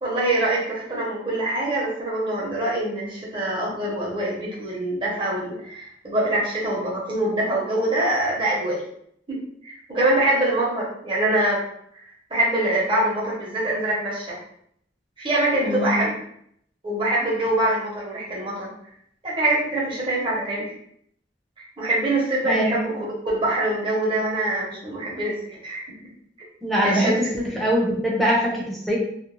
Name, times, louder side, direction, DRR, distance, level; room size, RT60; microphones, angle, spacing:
voice 1, 0.0-8.8 9.3-11.6 12.3-14.4 15.2-16.2 16.8-18.7 19.2-20.7 21.8-25.8 26.8-27.2, right 1 dB, 30° right, -6 dB, 0.9 m, -24 dB
voice 2, 15.6-16.0 22.4-22.8 26.6-27.1 27.6-29.0, equal, ahead, -5 dB, 0.6 m, -22 dB
2.5 x 2.2 x 3.0 m, 0.68 s
head